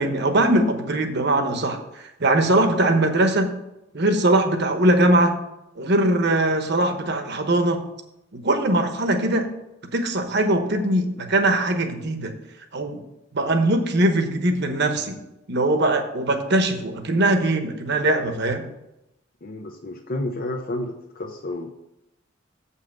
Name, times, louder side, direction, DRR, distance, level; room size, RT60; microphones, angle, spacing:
voice 1, 0.0-1.8 2.2-3.5 3.9-5.3 5.8-7.8 8.3-9.5 9.9-12.3 12.7-13.0 13.3-15.2 15.5-18.7, right 1 dB, 60° right, 6 dB, 1.1 m, -21 dB
voice 2, 19.4-21.7, left 1 dB, 45° left, 3 dB, 0.7 m, -31 dB
7.7 x 5.6 x 6.5 m, 0.88 s
head